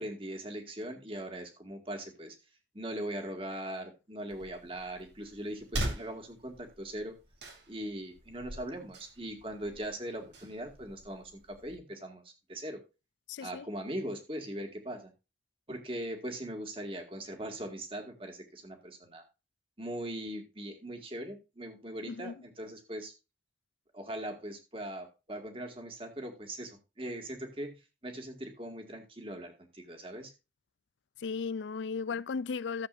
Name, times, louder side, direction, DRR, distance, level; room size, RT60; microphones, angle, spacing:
voice 1, 0.0-2.4 2.7-7.2 7.7-12.8 13.4-15.1 15.7-19.2 19.8-23.1 23.9-27.8 28.0-30.3, right 1 dB, 30° right, 2.2 m, -40 dB
sound 1, 4.3-11.8, right 1 dB, 80° right, 2.9 m, -43 dB
voice 2, 13.3-13.7 22.1-22.4 31.2-32.9, left 5 dB, 85° left, 0.4 m, -35 dB
14.5 x 7.8 x 2.6 m
head